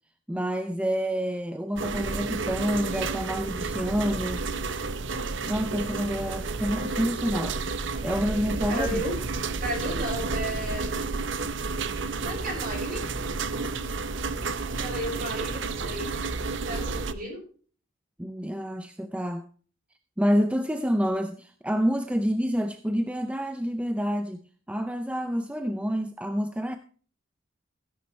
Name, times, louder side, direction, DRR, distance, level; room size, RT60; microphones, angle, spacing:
voice 1, 0.3-4.4 5.5-7.6 8.0-9.0 18.2-19.5 20.2-24.4 24.7-26.8, equal, 5° right, 0.5 m, -28 dB
sound 1, 1.8-17.1, right 4 dB, 65° right, 0.8 m, -31 dB
voice 2, 8.7-9.1 9.6-10.9 12.2-13.0 14.8-16.1 16.6-17.4, equal, 45° right, 6.5 m, -33 dB
16.0 x 10.5 x 3.2 m
head